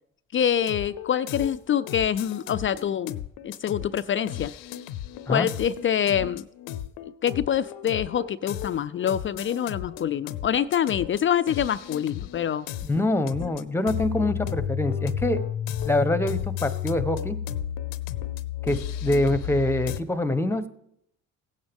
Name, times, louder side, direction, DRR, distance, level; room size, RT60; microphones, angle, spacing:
voice 1, 0.3-4.5 5.3-6.4 7.2-12.7, left 9 dB, 35° left, 14 dB, 0.4 m, -25 dB
Chill Videogame Music, 0.6-20.0, left 10 dB, 80° left, 0.7 m, -33 dB
voice 2, 12.9-15.4 15.8-17.4 18.6-20.7, left 1 dB, 5° left, 13 dB, 0.9 m, -25 dB
16.5 x 8.7 x 3.6 m, 0.78 s
supercardioid pair, 65°, 34 cm